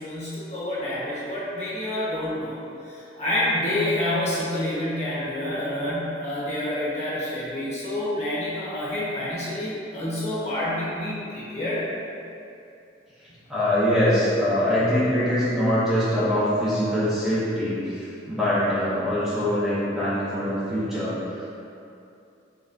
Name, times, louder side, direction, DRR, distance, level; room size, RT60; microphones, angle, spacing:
voice 1, 0.0-2.6 2.9-11.8, left 1 dB, 35° left, -9 dB, 1.1 m, -28 dB
voice 2, 13.2-21.4, left 1 dB, ahead, -12 dB, 0.5 m, -23 dB
4.0 x 3.5 x 2.6 m, 2.6 s
head